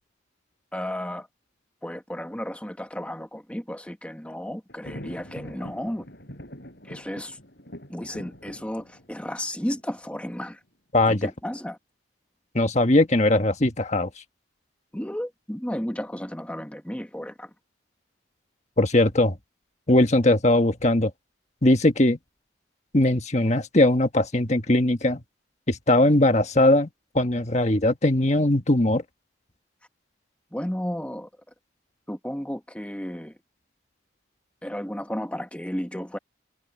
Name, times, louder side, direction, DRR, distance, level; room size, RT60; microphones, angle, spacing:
voice 1, 0.7-1.3 1.8-6.1 6.8-7.4 7.9-10.6 11.1-11.8 14.9-17.5 30.5-31.3 32.1-33.3 34.6-36.2, equal, 5° left, 1.2 m, -33 dB
Thunder, 4.7-10.5, equal, 55° left, 6.3 m, -44 dB
voice 2, 10.9-11.3 12.5-14.1 18.8-19.4 19.9-21.1 21.6-22.2 22.9-25.2 25.7-26.9 27.1-29.0, left 1 dB, 35° left, 1.4 m, -20 dB
head